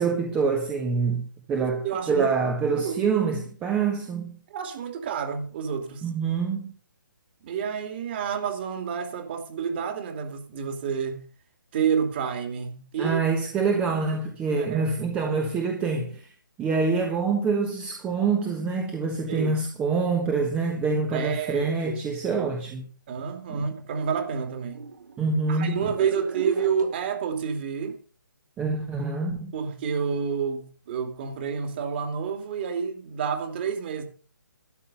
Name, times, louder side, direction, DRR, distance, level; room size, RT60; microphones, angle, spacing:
voice 1, 0.0-4.4 6.0-6.7 13.0-16.2 16.6-22.9 23.5-23.7 25.2-25.8 28.6-29.5, right 4 dB, 10° right, 1.2 m, -26 dB
voice 2, 1.6-2.3 2.7-3.0 4.5-6.1 7.4-11.2 11.7-13.2 14.5-14.9 19.3-19.6 21.1-22.0 22.3-22.5 23.1-24.9 25.5-28.0 29.5-34.0, right 7 dB, 30° right, 2.7 m, -29 dB
sound 1, 23.8-27.0, right 5 dB, 60° right, 2.6 m, -35 dB
13.0 x 10.0 x 5.5 m
hypercardioid pair, 160°, 11 cm